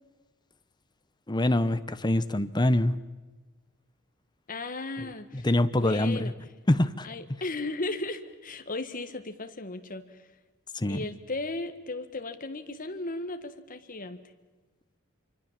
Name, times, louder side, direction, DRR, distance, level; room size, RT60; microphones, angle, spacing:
voice 1, 1.3-3.0 5.0-6.3 6.7-7.1 10.7-11.0, left 1 dB, 20° left, 12 dB, 0.9 m, -25 dB
voice 2, 4.5-5.5 5.8-6.3 7.0-10.2 10.9-14.2, left 2 dB, 40° left, 8 dB, 1.7 m, -36 dB
26.5 x 24.5 x 7.5 m, 1.2 s
head